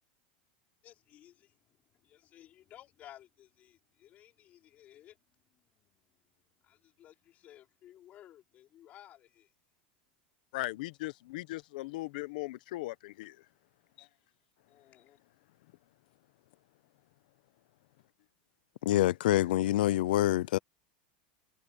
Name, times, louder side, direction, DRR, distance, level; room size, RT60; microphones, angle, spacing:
voice 1, 0.8-5.2 5.5-6.1 6.3-9.5 14.7-15.2, left 12 dB, 30° left, 5.2 m, -57 dB
voice 2, 10.5-13.4 14.0-14.1, left 19 dB, 70° left, 1.0 m, -38 dB
voice 3, 18.8-20.6, left 14 dB, 90° left, 0.6 m, -26 dB
supercardioid pair, 160°, 5 cm